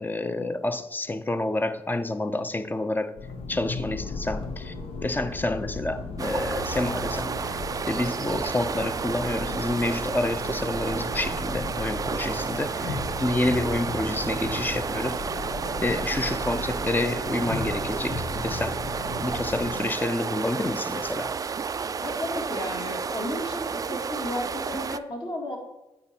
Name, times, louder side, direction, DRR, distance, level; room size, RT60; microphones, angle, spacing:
voice 1, 0.0-3.2 3.5-4.7 5.0-7.6 7.9-15.2 15.8-18.8 19.2-21.4, left 2 dB, 15° left, 0.6 m, -28 dB
sound 1, 3.2-19.8, left 3 dB, 65° left, 0.8 m, -36 dB
sound 2, 6.2-25.0, right 5 dB, 35° right, 0.3 m, -31 dB
voice 2, 22.0-25.6, left 1 dB, 45° left, 2.2 m, -33 dB
8.5 x 4.8 x 4.4 m
supercardioid pair, 55°, 11 cm